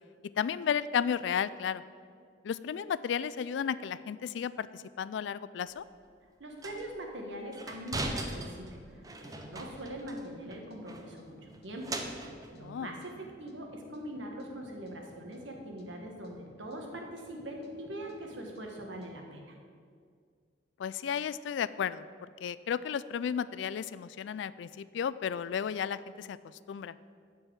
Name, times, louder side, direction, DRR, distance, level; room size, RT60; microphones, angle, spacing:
voice 1, 0.4-1.8 2.4-5.8 12.6-12.9 20.8-22.0 22.4-26.4 26.7-27.0, left 7 dB, 75° left, 17 dB, 0.3 m, -33 dB
sound 1, 5.7-5.8 6.6-6.9 7.5-10.2 10.5-10.6 10.9-12.6, right 2 dB, 20° right, 0.6 m, -39 dB
voice 2, 6.4-12.0 12.5-19.6, equal, 85° right, 2 dB, 1.4 m, -42 dB
sound 2, 8.9-19.1, right 1 dB, 55° left, 1.1 m, -57 dB
9.6 x 4.6 x 7.7 m, 2.1 s
head